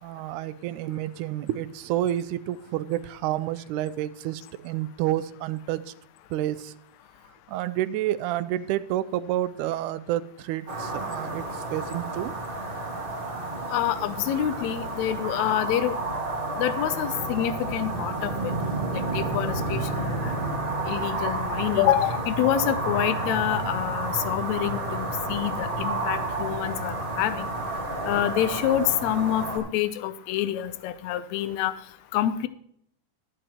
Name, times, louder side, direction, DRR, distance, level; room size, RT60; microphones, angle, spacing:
voice 1, 0.0-5.9 6.3-6.7 7.5-12.4, right 13 dB, 85° right, 15 dB, 2.0 m, -29 dB
sound 1, 10.7-29.6, right 2 dB, 20° right, 1.5 m, -30 dB
voice 2, 13.7-15.9 16.6-18.3 18.9-20.1 20.4-20.6 20.9-27.5 28.1-31.7 32.1-32.5, left 12 dB, 80° left, 13 dB, 1.9 m, -27 dB
13.0 x 9.8 x 3.0 m, 0.68 s
omnidirectional pair, 3.5 m